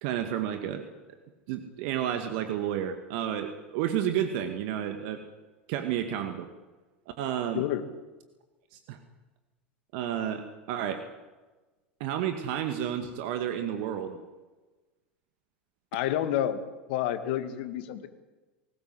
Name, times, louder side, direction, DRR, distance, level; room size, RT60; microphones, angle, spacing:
voice 1, 0.0-0.9 1.5-5.2 5.7-6.5 7.2-7.6 8.7-9.0 9.9-11.0 12.0-14.2, right 10 dB, 60° right, 8 dB, 2.1 m, -31 dB
voice 2, 7.5-7.9 15.9-16.6 16.9-18.1, left 11 dB, 60° left, 10 dB, 2.1 m, -29 dB
21.5 x 19.0 x 7.8 m, 1.2 s
figure-of-eight pair, 80°, 6 cm